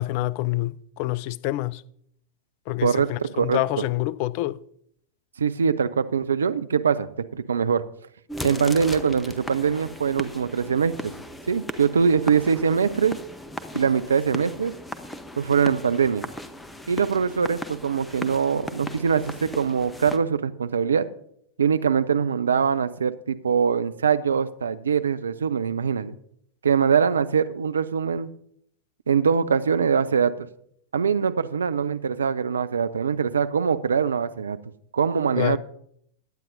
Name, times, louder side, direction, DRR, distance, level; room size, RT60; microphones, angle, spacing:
voice 1, 0.0-1.8 2.7-4.6 35.4-35.6, left 17 dB, 45° left, 0.4 m, -27 dB
voice 2, 5.4-7.8 8.4-11.1 11.5-13.2 13.7-14.7 15.4-16.2 16.9-21.1 21.6-26.1 26.6-28.3 29.1-30.5 30.9-34.6 34.9-35.6, right 6 dB, 70° right, 0.5 m, -23 dB
sound 1, 8.3-20.2, left 1 dB, 5° left, 0.8 m, -37 dB
20.5 x 9.1 x 2.6 m
figure-of-eight pair, 90°, 0 cm